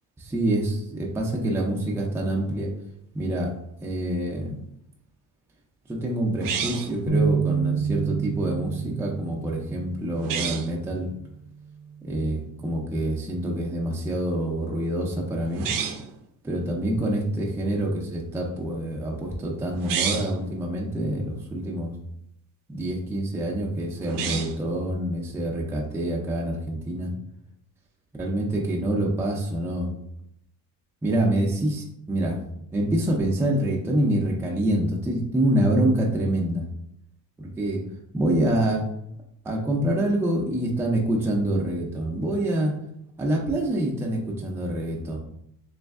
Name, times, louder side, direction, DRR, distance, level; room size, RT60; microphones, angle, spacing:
voice 1, 0.2-2.7 3.1-3.5 3.8-4.6 5.9-11.1 12.0-15.7 16.4-22.0 22.7-27.1 28.2-29.9 31.0-32.4 32.7-36.7 37.4-37.8 38.1-38.9 39.4-42.7 43.2-45.2, right 1 dB, 5° right, -1 dB, 0.4 m, -26 dB
sound 1, 6.4-7.0 10.2-10.7 15.5-16.1 19.7-20.4 24.0-24.7, right 7 dB, 65° right, 0.5 m, -29 dB
sound 2, 7.1-11.3 11.8-12.0 12.9-13.3, right 5 dB, 85° left, 1.2 m, -29 dB
3.5 x 3.2 x 3.4 m, 0.74 s
cardioid pair, 150°, 36 cm